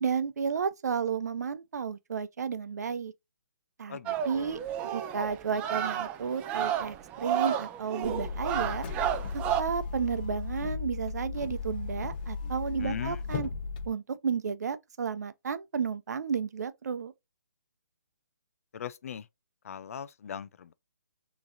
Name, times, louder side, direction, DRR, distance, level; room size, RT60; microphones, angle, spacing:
voice 1, 0.0-3.1 3.8-4.0 4.3-4.6 4.9-8.9 9.3-13.5 13.9-17.1, right 6 dB, 65° right, 0.7 m, -32 dB
voice 2, 3.9-4.6 12.8-13.2 18.7-19.3 19.6-20.7, left 8 dB, 50° left, 0.5 m, -39 dB
sound 1, 4.1-9.6, right 10 dB, 15° right, 0.4 m, -32 dB
sound 2, 8.0-13.9, left 5 dB, 30° left, 1.0 m, -36 dB
6.1 x 3.1 x 2.6 m
hypercardioid pair, 155°, 10 cm